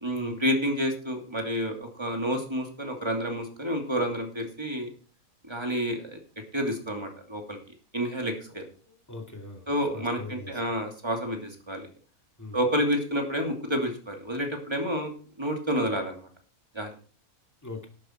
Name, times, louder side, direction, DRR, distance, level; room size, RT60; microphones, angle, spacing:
voice 1, 0.0-4.9 5.5-6.2 6.5-7.6 7.9-8.6 9.7-11.8 12.5-15.1 15.4-16.3 16.7-16.9, equal, 15° right, 2 dB, 2.7 m, -29 dB
voice 2, 8.9-10.6 12.4-12.6 17.6-17.9, left 2 dB, 10° left, 2 dB, 2.5 m, -41 dB
12.0 x 10.5 x 4.6 m, 0.40 s
omnidirectional pair, 1.6 m